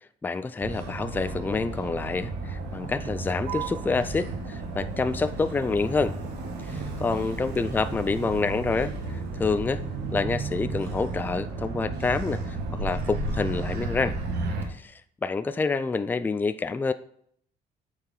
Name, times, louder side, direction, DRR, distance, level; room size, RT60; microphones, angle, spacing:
voice 1, 0.2-6.1 6.7-9.8 10.1-14.1 14.8-14.9 15.2-16.9, left 4 dB, 10° left, 12 dB, 0.3 m, -27 dB
Motor vehicle (road), 0.6-14.6, right 3 dB, 85° right, 1.4 m, -33 dB
8.4 x 4.7 x 3.8 m, 0.65 s
cardioid pair, 110°, 17 cm